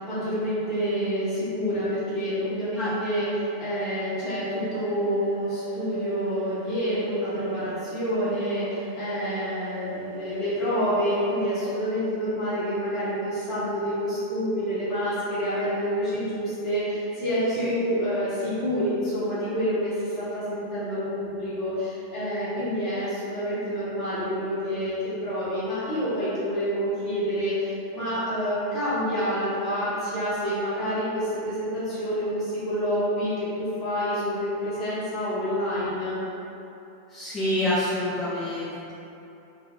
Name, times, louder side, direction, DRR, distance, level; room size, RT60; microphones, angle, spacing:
voice 1, 0.0-36.2, equal, 35° left, -12 dB, 1.0 m, -28 dB
sound 1, 4.4-12.0, right 3 dB, 50° right, 0.8 m, -39 dB
voice 2, 37.1-38.9, left 1 dB, 15° left, -11 dB, 0.6 m, -27 dB
3.4 x 2.2 x 2.5 m, 2.8 s
figure-of-eight pair, 90°, 0 cm